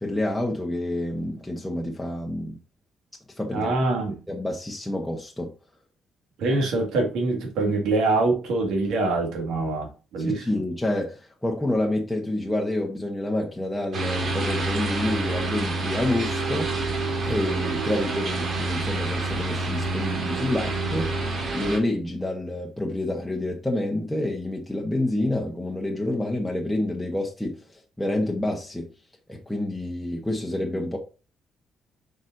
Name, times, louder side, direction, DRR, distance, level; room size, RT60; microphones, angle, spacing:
voice 1, 0.0-2.6 3.4-3.7 4.3-5.5 10.2-17.0 17.2-21.1 21.5-28.9 29.3-31.0, left 1 dB, 5° left, 1.1 m, -28 dB
voice 2, 3.5-4.2 6.4-10.4, right 2 dB, 85° right, 1.9 m, -24 dB
sound 1, 13.9-21.8, right 3 dB, 55° right, 2.0 m, -27 dB
7.1 x 5.1 x 2.7 m
cardioid pair, 90°, 0 cm